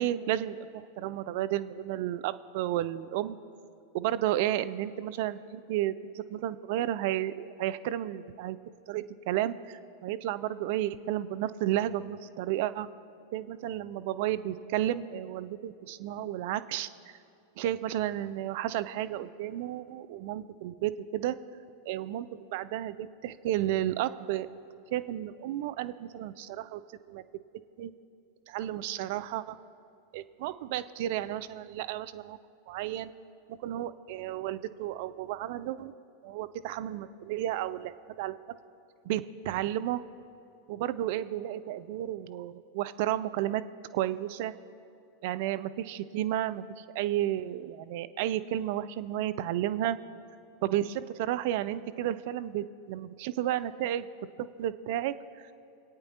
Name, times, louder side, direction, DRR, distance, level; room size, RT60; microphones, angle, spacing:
voice 1, 0.0-3.4 3.9-8.6 8.9-12.9 13.3-16.9 17.6-21.4 21.9-24.5 24.9-26.8 27.1-27.2 27.8-27.9 28.5-29.6 30.1-32.4 32.7-33.1 33.6-35.9 36.2-38.4 39.0-40.0 40.7-43.6 43.9-44.5 45.2-50.0 50.6-54.1 54.4-55.5, right 12 dB, 55° right, 13 dB, 0.3 m, -32 dB
20.5 x 8.8 x 2.9 m, 2.6 s
figure-of-eight pair, 90°, 0 cm